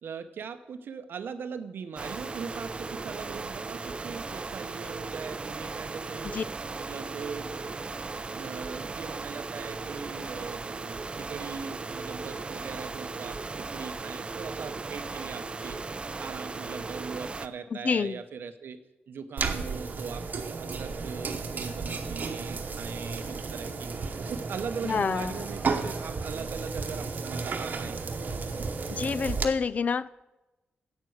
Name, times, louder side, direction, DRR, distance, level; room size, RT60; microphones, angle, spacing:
voice 1, 0.0-6.4 6.7-7.6 8.4-13.4 13.7-15.8 16.2-18.8 19.1-23.9 24.2-28.0, right 6 dB, 70° right, 9 dB, 0.7 m, -40 dB
sound 1, 2.0-17.5, right 3 dB, 30° right, 0.4 m, -37 dB
voice 2, 17.7-18.2 24.8-25.5 28.9-30.1, left 5 dB, 40° left, 19 dB, 0.4 m, -28 dB
sound 2, 19.4-29.4, right 4 dB, 50° right, 1.0 m, -33 dB
9.2 x 8.2 x 6.4 m, 1.0 s
wide cardioid pair, 120°, 4 cm